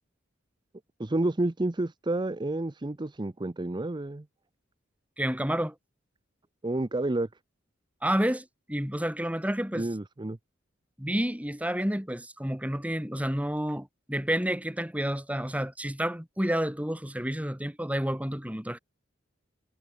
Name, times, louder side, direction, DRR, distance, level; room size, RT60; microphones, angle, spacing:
voice 1, 1.0-4.2 6.6-7.3 9.8-10.4, right 2 dB, 25° right, 0.6 m, -30 dB
voice 2, 5.2-5.7 8.0-9.9 11.0-18.8, equal, 5° right, 2.9 m, -30 dB
head